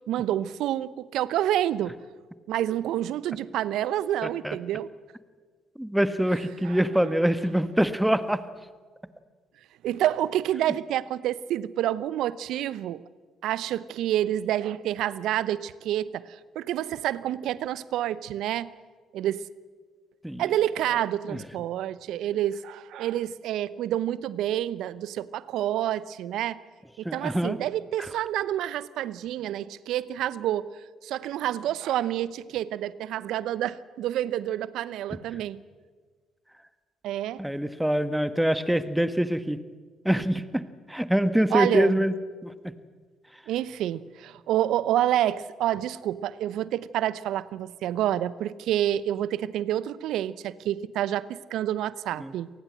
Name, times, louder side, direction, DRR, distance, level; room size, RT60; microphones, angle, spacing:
voice 1, 0.1-1.9 2.5-4.9 6.6-6.8 9.8-13.0 13.4-18.7 19.1-19.4 20.4-26.6 27.0-30.7 31.0-35.6 37.0-37.4 41.5-42.0 43.5-52.5, right 12 dB, 70° right, 18 dB, 0.7 m, -28 dB
voice 2, 4.2-4.6 5.8-8.4 20.2-20.4 21.3-21.4 27.1-27.6 35.3-35.4 37.4-39.6 40.1-40.6 40.9-42.1 42.4-42.5 52.2-52.3, equal, 5° right, 12 dB, 1.6 m, -24 dB
27.5 x 19.0 x 7.8 m, 1.5 s
hypercardioid pair, 50°, 0 cm